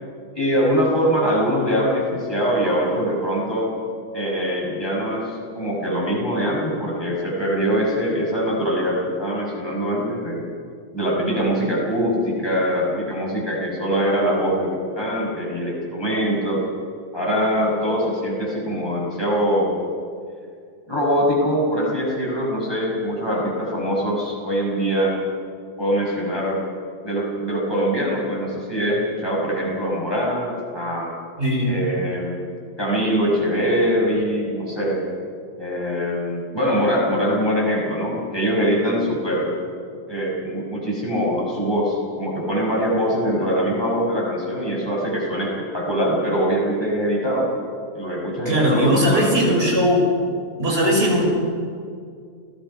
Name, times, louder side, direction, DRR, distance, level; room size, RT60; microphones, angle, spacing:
voice 1, 0.3-3.7 4.1-10.4 10.9-16.6 17.1-19.7 20.9-25.1 25.8-26.6 27.0-31.2 31.6-32.4 32.8-35.0 35.6-39.6 40.1-47.5 47.9-49.7, equal, 15° left, -4 dB, 6.1 m, -23 dB
voice 2, 31.4-31.8 48.4-50.1 50.6-51.2, equal, 40° right, -1 dB, 5.8 m, -19 dB
29.0 x 18.0 x 5.7 m, 2.2 s
omnidirectional pair, 1.6 m